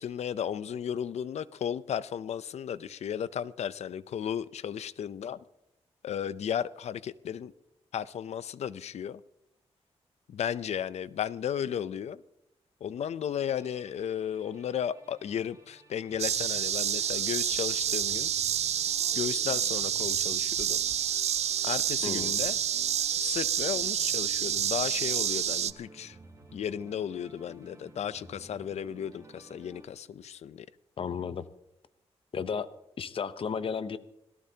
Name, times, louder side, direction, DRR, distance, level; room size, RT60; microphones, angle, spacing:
voice 1, 0.0-5.4 6.0-7.5 7.9-9.2 10.3-12.2 12.8-18.3 19.1-20.8 21.6-22.6 23.2-26.2 26.5-30.7, left 9 dB, 85° left, 16 dB, 0.6 m, -34 dB
sound 1, 13.6-29.9, right 2 dB, 30° right, 4.4 m, -54 dB
sound 2, 16.2-25.7, right 10 dB, 90° right, 0.5 m, -29 dB
voice 2, 22.0-22.4 31.0-31.4 32.3-32.7 33.0-34.0, left 6 dB, 55° left, 13 dB, 0.8 m, -33 dB
26.0 x 17.5 x 2.9 m, 0.83 s
wide cardioid pair, 110°, 11 cm